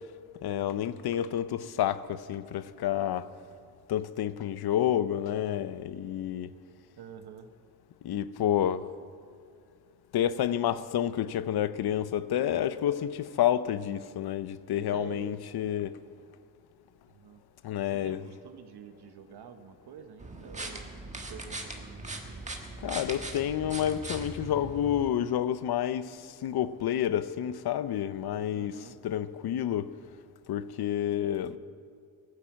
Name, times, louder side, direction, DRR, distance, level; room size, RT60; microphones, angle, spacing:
voice 1, 0.4-3.3 3.9-6.5 8.0-8.9 10.1-16.0 17.6-18.3 22.8-30.0 30.5-31.6, left 10 dB, 75° left, 0.7 m, -29 dB
voice 2, 7.0-7.5 12.5-12.8 14.9-15.4 17.1-17.4 17.8-22.4 28.5-29.0 31.5-31.6, right 7 dB, 90° right, 1.0 m, -48 dB
sound 1, 20.2-25.1, right 2 dB, 20° right, 1.5 m, -40 dB
19.5 x 9.7 x 7.4 m
wide cardioid pair, 135°, 38 cm